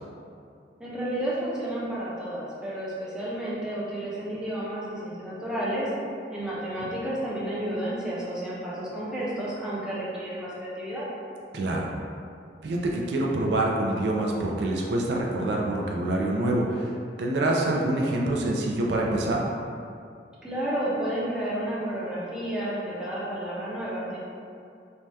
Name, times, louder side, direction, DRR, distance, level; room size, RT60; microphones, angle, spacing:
voice 1, 0.8-5.9 6.3-11.1 20.4-24.2, right 1 dB, 5° right, -8 dB, 0.5 m, -31 dB
voice 2, 11.5-11.9 12.6-19.5, right 1 dB, 70° right, -2 dB, 0.3 m, -26 dB
2.7 x 2.2 x 3.2 m, 2.4 s
head